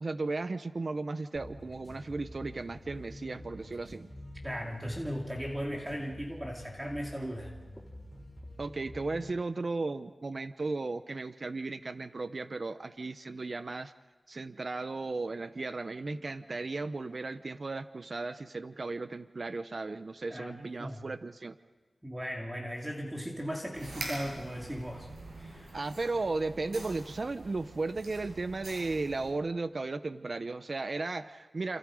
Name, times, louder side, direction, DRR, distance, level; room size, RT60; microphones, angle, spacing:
voice 1, 0.0-4.1 8.6-13.9 14.3-21.6 25.7-31.8, right 3 dB, 55° right, 12 dB, 0.8 m, -35 dB
sound 1, 1.3-9.4, left 1 dB, 10° left, 7.6 m, -47 dB
voice 2, 4.4-7.8 20.3-20.5 20.8-21.1 22.0-25.8 26.6-26.8, equal, 15° right, 0 dB, 2.5 m, -38 dB
sound 2, 23.7-29.3, right 2 dB, 85° right, 6.8 m, -45 dB
28.0 x 28.0 x 5.0 m, 1.2 s
wide cardioid pair, 70°, 0 cm